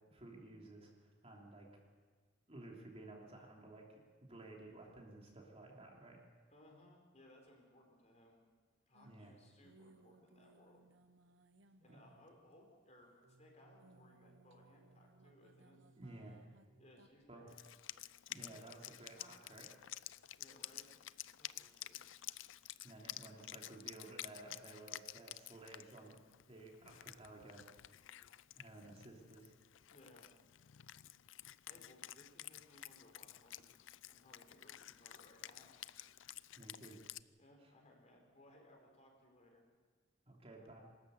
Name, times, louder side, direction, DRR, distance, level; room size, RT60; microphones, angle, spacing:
voice 1, 0.1-1.7 2.5-3.9 4.2-6.2 9.0-9.3 11.9-12.0 15.9-16.4 17.3-17.5 18.3-19.7 22.8-26.2 26.5-27.6 28.5-29.5 36.6-37.0 37.6-37.7 40.3-40.8, right 2 dB, 35° right, -1 dB, 3.2 m, -54 dB
voice 2, 6.5-8.4 8.9-10.9 11.8-15.8 16.8-17.6 20.4-20.9 21.4-22.0 29.9-30.3 31.6-35.8 37.4-39.6, left 1 dB, 35° left, 1 dB, 4.4 m, -64 dB
sound 1, 8.9-12.9 13.2-17.1, right 2 dB, 75° right, 1.2 m, -66 dB
Wind instrument woodwind instrument, 17.5-37.2, left 14 dB, 80° left, 0.5 m, -52 dB
24.0 x 13.5 x 8.2 m, 1.5 s
head